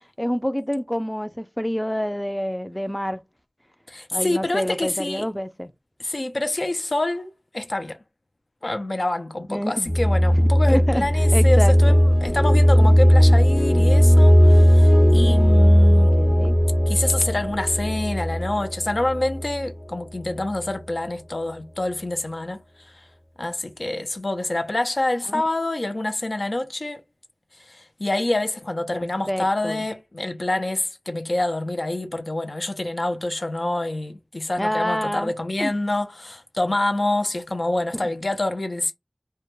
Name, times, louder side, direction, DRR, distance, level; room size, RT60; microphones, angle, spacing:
voice 1, 0.2-3.2 4.1-5.7 9.5-9.9 10.3-11.1 11.3-12.0 15.9-16.6 25.3-25.4 28.9-29.9 34.6-35.3 35.6-35.7 37.9-38.1, equal, 10° left, 0.3 m, -27 dB
voice 2, 3.9-5.3 6.0-8.0 8.6-16.2 16.9-23.1 23.4-27.0 27.6-38.9, left 2 dB, 80° left, 0.4 m, -26 dB
sound 1, 9.9-19.7, equal, 50° left, 0.9 m, -16 dB
2.2 x 2.1 x 3.0 m
wide cardioid pair, 45°, 0 cm